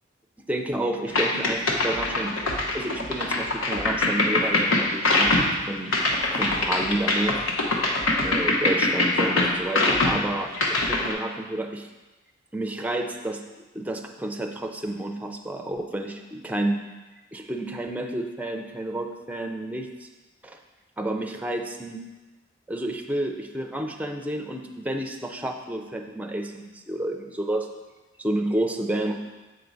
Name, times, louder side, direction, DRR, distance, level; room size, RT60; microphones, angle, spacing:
voice 1, 0.5-2.4 2.7-6.0 6.3-7.4 8.2-11.9 12.5-13.4 13.7-16.8 17.3-20.1 20.4-20.6 21.0-22.0 22.7-27.7 28.2-29.2, right 1 dB, 5° right, 3 dB, 0.5 m, -30 dB
sound 1, 1.1-11.1, left 2 dB, 75° left, 1.0 m, -23 dB
7.9 x 4.6 x 3.9 m, 1.2 s
head